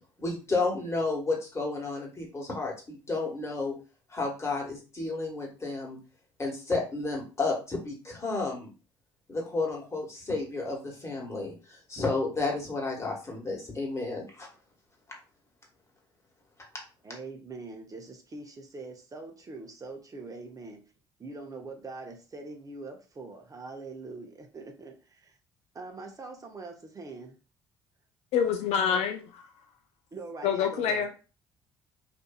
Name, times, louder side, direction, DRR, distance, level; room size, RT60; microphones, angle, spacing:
voice 1, 0.2-3.7 4.1-6.0 6.4-8.7 9.3-14.5, left 3 dB, 25° left, -1 dB, 1.3 m, -32 dB
voice 2, 17.0-20.8 21.2-25.4 25.7-27.4 30.1-31.0, right 3 dB, 30° right, 2 dB, 0.7 m, -43 dB
voice 3, 28.3-29.4 30.4-31.1, left 7 dB, 65° left, 5 dB, 0.4 m, -26 dB
2.5 x 2.5 x 2.3 m, 0.33 s
hypercardioid pair, 55°, 12 cm